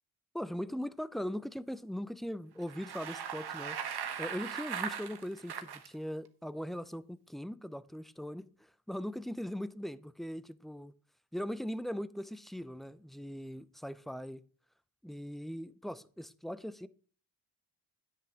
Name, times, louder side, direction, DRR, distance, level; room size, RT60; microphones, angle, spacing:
voice 1, 0.3-3.8 4.2-10.9 11.3-14.4 15.0-16.9, equal, ahead, 0.7 m, -40 dB
Bicycle, 2.6-5.9, right 8 dB, 55° right, 1.5 m, -39 dB
10.0 x 8.6 x 3.9 m
supercardioid pair, 55°, 48 cm